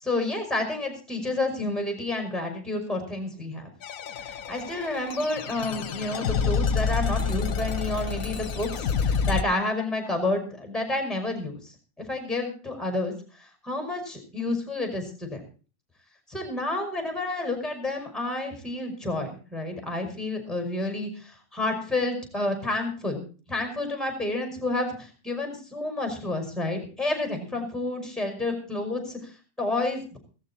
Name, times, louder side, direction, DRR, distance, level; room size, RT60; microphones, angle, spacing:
voice 1, 0.0-3.7 4.2-13.1 13.4-15.4 16.3-23.2 23.5-29.3 29.6-30.2, left 2 dB, ahead, 5 dB, 5.5 m, -30 dB
sound 1, 3.8-9.4, left 6 dB, 70° left, 1.3 m, -28 dB
16.5 x 14.0 x 4.3 m, 0.37 s
omnidirectional pair, 1.5 m